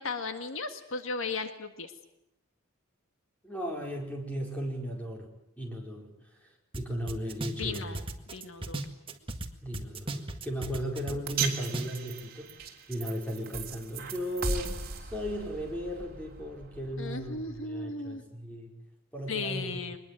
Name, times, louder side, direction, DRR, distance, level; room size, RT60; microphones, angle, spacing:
voice 1, 0.0-1.9 7.6-8.0 8.3-8.8 17.0-18.2 19.3-20.0, left 3 dB, 70° left, 8 dB, 1.8 m, -36 dB
voice 2, 3.4-5.3 5.6-6.1 6.7-8.0 9.6-12.6 12.9-18.7 19.1-19.8, equal, 5° left, 0 dB, 4.9 m, -36 dB
sound 1, 6.7-6.8 7.1-9.5 9.7-12.0, right 2 dB, 25° right, 1.8 m, -36 dB
sound 2, 11.3-17.6, right 5 dB, 45° right, 3.4 m, -38 dB
23.0 x 21.0 x 9.2 m, 0.80 s
head